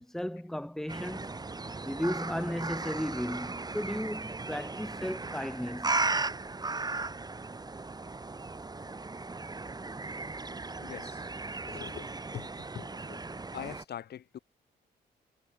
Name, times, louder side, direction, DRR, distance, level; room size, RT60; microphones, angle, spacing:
voice 1, 0.0-1.4 1.8-6.0, equal, ahead, 1.5 m, -35 dB
sound 1, 0.9-13.8, right 3 dB, 25° right, 3.4 m, -36 dB
voice 2, 10.8-11.2 11.7-12.1 12.3-12.5 12.7-13.2 13.5-14.4, left 10 dB, 75° left, 6.3 m, -42 dB
cardioid pair, 90°, 17 cm